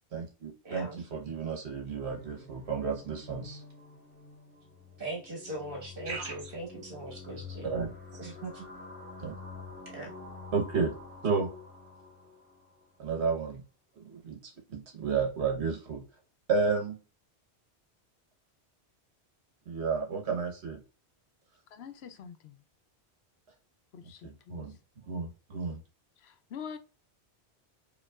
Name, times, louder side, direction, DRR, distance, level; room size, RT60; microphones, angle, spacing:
voice 1, 0.1-3.6 6.0-6.4 7.6-7.9 9.2-9.3 10.5-10.9 11.2-11.5 13.0-13.6 14.0-14.4 14.7-16.0 16.5-17.0 19.7-20.8 24.2-24.7 25.1-25.8, right 5 dB, 75° right, 1.4 m, -32 dB
voice 2, 0.6-1.0 5.0-7.7 8.2-8.7 9.9-10.1, right 2 dB, 55° right, 1.7 m, -40 dB
sound 1, 2.1-12.9, left 4 dB, 10° right, 1.5 m, -47 dB
voice 3, 21.7-22.6 23.9-24.6 26.2-26.8, left 7 dB, 75° left, 0.8 m, -45 dB
5.2 x 2.9 x 2.3 m
omnidirectional pair, 1.1 m